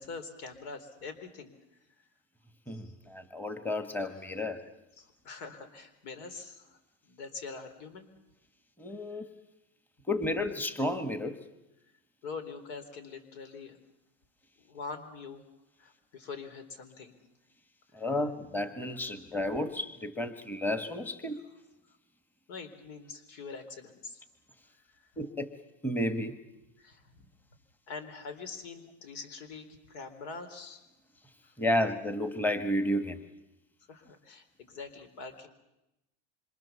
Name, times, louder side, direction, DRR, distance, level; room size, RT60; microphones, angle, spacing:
voice 1, 0.0-1.5 2.7-2.9 5.0-6.8 7.1-8.1 12.2-13.8 14.6-15.4 15.8-17.1 22.5-24.2 26.8-27.0 27.9-30.8 31.4-31.5 33.9-35.5, left 4 dB, 70° left, 9 dB, 3.9 m, -44 dB
voice 2, 2.7-4.6 8.8-9.3 10.1-11.4 17.9-21.4 25.2-25.5 25.8-26.4 31.6-33.2, left 1 dB, 5° left, 9 dB, 1.5 m, -32 dB
26.5 x 25.5 x 7.1 m, 0.91 s
supercardioid pair, 135°, 34 cm